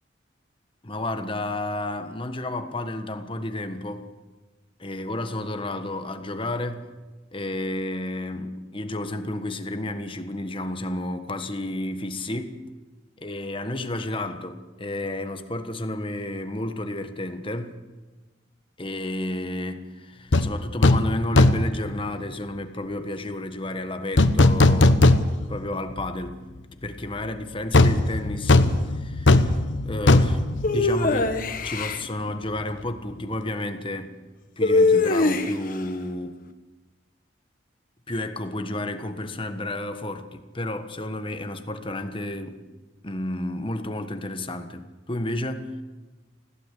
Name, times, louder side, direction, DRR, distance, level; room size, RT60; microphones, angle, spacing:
voice 1, 0.8-4.1 4.8-6.8 7.3-12.6 13.2-17.8 18.8-25.1 25.5-26.4 26.8-29.5 29.8-31.3 31.6-34.1 34.6-36.4 38.1-42.6 43.0-45.8, left 1 dB, 25° left, 8 dB, 1.4 m, -31 dB
sound 1, 20.3-20.5 20.8-21.1 21.4-21.8 24.2-25.6 26.0-26.1 27.7-31.4 31.7-31.8, left 2 dB, 70° left, 1.0 m, -18 dB
sound 2, 30.6-32.0 34.6-35.8, left 3 dB, 45° left, 1.5 m, -21 dB
20.5 x 16.0 x 8.4 m, 1.3 s
head